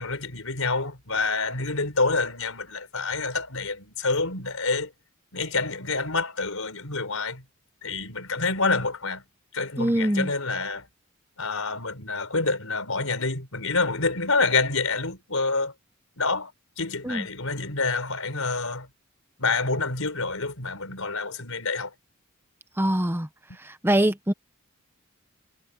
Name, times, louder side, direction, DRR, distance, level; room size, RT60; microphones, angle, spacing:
voice 1, 0.0-4.9 5.3-7.4 7.8-9.2 9.5-10.9 11.4-15.7 16.2-16.5 16.8-18.9 19.4-21.9, left 3 dB, 80° left, 4.5 m, -27 dB
voice 2, 9.8-10.3 17.0-17.2 22.8-23.3 23.8-24.3, right 1 dB, 10° right, 1.0 m, -23 dB
head